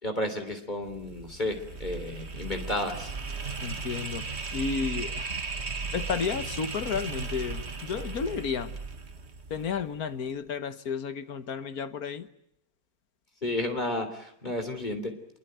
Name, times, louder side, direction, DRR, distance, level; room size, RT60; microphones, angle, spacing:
voice 1, 0.0-3.1 13.4-15.1, left 1 dB, 30° left, 6 dB, 3.6 m, -32 dB
sound 1, 0.8-10.0, right 4 dB, 50° right, 2.0 m, -36 dB
voice 2, 3.6-5.3 5.9-8.7 9.5-12.3, left 6 dB, 80° left, 11 dB, 1.8 m, -32 dB
26.5 x 23.0 x 9.3 m, 0.74 s
omnidirectional pair, 1.5 m